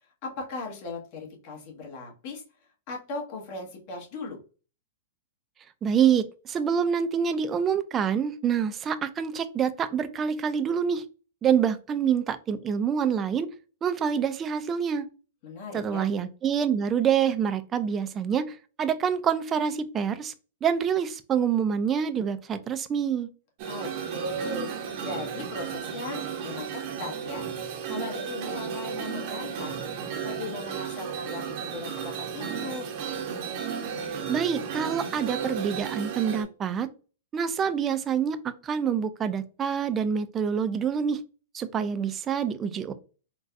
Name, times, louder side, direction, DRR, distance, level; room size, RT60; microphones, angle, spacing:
voice 1, 0.0-2.4 2.9-4.4 15.4-16.1 23.6-27.5 27.9-29.8 30.2-32.9, left 2 dB, 50° left, 0 dB, 1.4 m, -38 dB
voice 2, 5.8-11.0 11.4-13.5 13.8-15.1 15.7-20.3 20.6-23.3 34.0-36.9 37.3-41.2 41.5-42.9, right 7 dB, 25° right, 11 dB, 0.4 m, -26 dB
sound 1, 23.6-36.4, right 7 dB, 50° right, 0.7 m, -34 dB
3.9 x 2.3 x 2.5 m, 0.35 s
hypercardioid pair, 125°, 0 cm